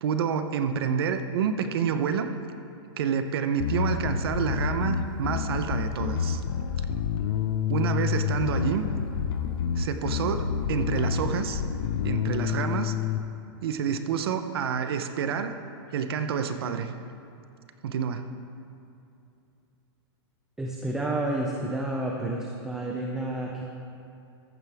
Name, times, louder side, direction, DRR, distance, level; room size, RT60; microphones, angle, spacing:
voice 1, 0.0-2.3 3.0-6.4 7.7-8.8 9.7-11.6 12.0-12.9 13.6-15.5 15.9-16.9 17.8-18.2, right 7 dB, 60° right, 8 dB, 0.7 m, -28 dB
Bass guitar, 3.6-13.2, left 7 dB, 60° left, 0.7 m, -28 dB
voice 2, 20.6-23.6, right 1 dB, 5° right, -2 dB, 0.5 m, -30 dB
14.5 x 10.0 x 3.5 m, 2.6 s
supercardioid pair, 170°, 14 cm